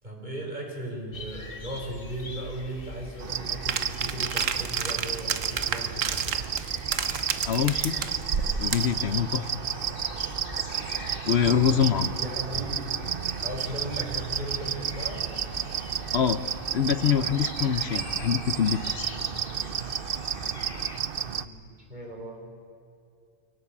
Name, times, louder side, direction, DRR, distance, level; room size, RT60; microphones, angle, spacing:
voice 1, 0.0-6.4 11.6-11.8 12.1-13.0 13.3-15.2 21.2-21.6 21.9-22.5, right 1 dB, 35° right, -1 dB, 5.3 m, -37 dB
sound 1, 1.1-21.0, left 1 dB, 45° left, 1.9 m, -43 dB
sound 2, 3.2-21.4, right 8 dB, 50° right, 0.8 m, -32 dB
sound 3, 3.7-9.0, right 6 dB, 85° right, 1.5 m, -31 dB
voice 2, 7.4-8.0 8.6-9.5 11.3-12.2 16.1-16.4 16.7-19.1, left 8 dB, 60° left, 13 dB, 0.9 m, -25 dB
24.5 x 17.5 x 8.6 m, 2.5 s
omnidirectional pair, 1.3 m